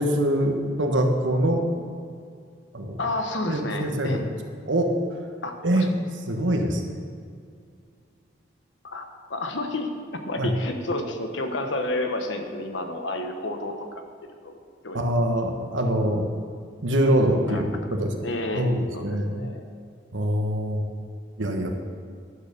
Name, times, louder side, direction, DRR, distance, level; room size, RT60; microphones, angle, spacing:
voice 1, 0.0-1.6 2.7-3.0 3.5-4.1 4.7-4.9 5.6-5.9 6.3-7.0 10.4-10.5 14.9-16.3 16.8-18.1 18.5-19.4 20.1-20.8 21.4-21.7, right 1 dB, 85° right, 3 dB, 1.3 m, -24 dB
voice 2, 3.0-4.2 5.4-5.9 8.8-9.9 10.3-14.0 14.4-14.5 14.8-15.0 17.5-17.6 18.2-18.7 18.9-19.6, left 2 dB, 85° left, 5 dB, 1.2 m, -30 dB
11.0 x 6.7 x 6.8 m, 2.2 s
head